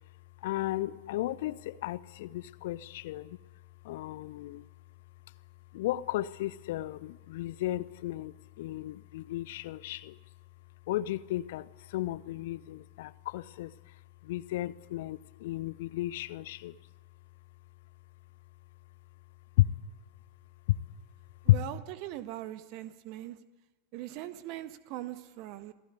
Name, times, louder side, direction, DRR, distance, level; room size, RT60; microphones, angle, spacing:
voice 1, 0.4-3.4 3.8-4.6 5.7-10.2 10.9-13.7 14.2-16.7 19.6-19.7 20.7-20.8 21.5-21.6, left 16 dB, 55° left, 19 dB, 0.8 m, -33 dB
voice 2, 21.4-23.4 23.9-25.7, right 14 dB, 45° right, 13 dB, 1.6 m, -41 dB
27.5 x 17.5 x 9.7 m, 1.2 s
figure-of-eight pair, 90°, 0 cm